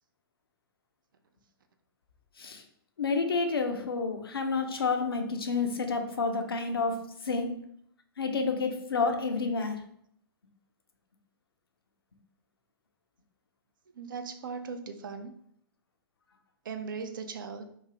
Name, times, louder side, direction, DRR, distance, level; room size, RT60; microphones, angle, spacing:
voice 1, 3.0-7.6 8.2-9.8, left 4 dB, 70° left, 5 dB, 0.6 m, -29 dB
voice 2, 13.9-15.3 16.6-17.6, right 5 dB, 55° right, 7 dB, 0.4 m, -38 dB
3.0 x 2.6 x 3.7 m, 0.69 s
figure-of-eight pair, 115°, 13 cm